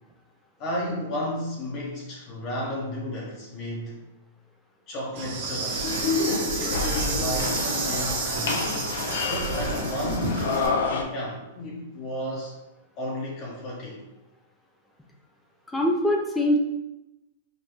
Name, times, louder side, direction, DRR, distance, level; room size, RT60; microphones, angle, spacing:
voice 1, 0.6-4.0 4.9-5.9 6.3-8.9 9.3-12.5 13.0-14.0, left 1 dB, 30° left, -3 dB, 0.9 m, -33 dB
Insect, 5.1-10.7, right 4 dB, 60° right, 1.4 m, -30 dB
sound 1, 5.7-11.0, left 4 dB, 75° left, 0.6 m, -28 dB
voice 2, 15.7-16.6, left 1 dB, 5° left, 1 dB, 0.5 m, -23 dB
5.1 x 2.6 x 3.0 m, 0.96 s
supercardioid pair, 160°, 0 cm